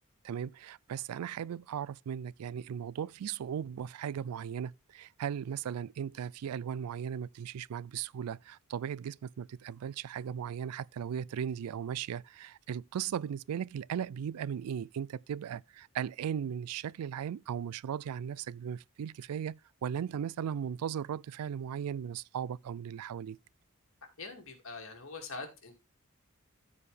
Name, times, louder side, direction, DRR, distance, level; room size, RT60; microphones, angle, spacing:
voice 1, 0.2-23.4, right 8 dB, 90° right, 0.3 m, -37 dB
voice 2, 24.2-25.7, left 3 dB, 60° left, 2.4 m, -43 dB
13.5 x 4.8 x 3.3 m
head